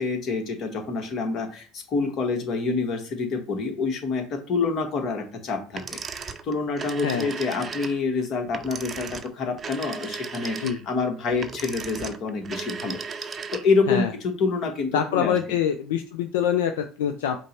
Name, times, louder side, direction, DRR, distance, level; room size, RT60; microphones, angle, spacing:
voice 1, 0.0-13.0 13.5-15.5, left 4 dB, 50° left, 5 dB, 1.0 m, -27 dB
sound 1, 5.7-13.9, right 5 dB, 35° right, 0.5 m, -36 dB
voice 2, 14.9-17.4, left 9 dB, 80° left, 7 dB, 0.3 m, -25 dB
5.1 x 2.0 x 4.2 m, 0.38 s
hypercardioid pair, 75°, 0 cm